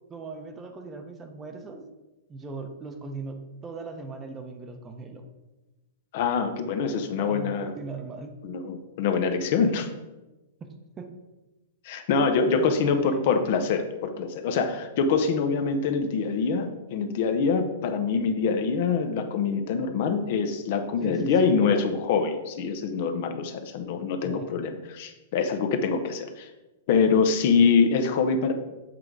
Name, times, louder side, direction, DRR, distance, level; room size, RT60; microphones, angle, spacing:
voice 1, 0.1-1.8 2.3-5.3 7.2-8.3 9.6-9.9 11.0-11.1 12.5-13.2 21.0-21.6 24.2-24.6, right 3 dB, 20° right, 6 dB, 0.8 m, -38 dB
voice 2, 6.1-7.8 8.4-9.9 11.8-26.5 26.9-28.5, left 5 dB, 55° left, 7 dB, 0.8 m, -25 dB
7.6 x 3.7 x 4.7 m, 1.1 s
hypercardioid pair, 125°, 0 cm